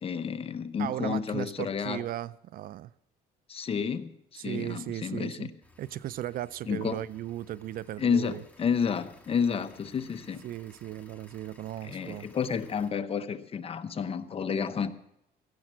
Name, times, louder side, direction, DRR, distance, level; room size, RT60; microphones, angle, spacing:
voice 1, 0.0-2.0 3.5-5.5 6.7-7.0 8.0-10.4 11.8-14.9, left 6 dB, 35° left, 0.8 m, -30 dB
voice 2, 0.8-2.9 4.4-5.5 5.8-8.4 10.4-12.3, right 13 dB, 60° right, 0.4 m, -36 dB
sound 1, 5.6-12.9, left 2 dB, 10° left, 1.9 m, -58 dB
15.5 x 7.4 x 7.4 m
cardioid pair, 110°, 17 cm